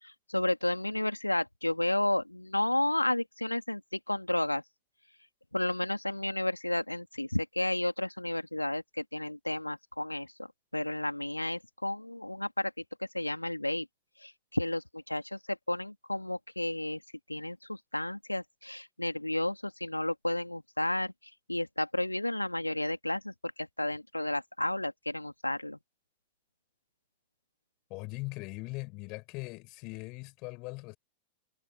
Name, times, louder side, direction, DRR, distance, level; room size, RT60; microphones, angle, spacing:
voice 1, 0.0-4.6 5.5-10.5 10.7-12.7 13.1-13.9 14.2-17.0 17.3-21.1 21.5-25.8, left 1 dB, 85° left, 2.4 m, -32 dB
voice 2, 27.9-31.0, left 26 dB, 40° left, 6.1 m, -40 dB
figure-of-eight pair, 90°, 0 cm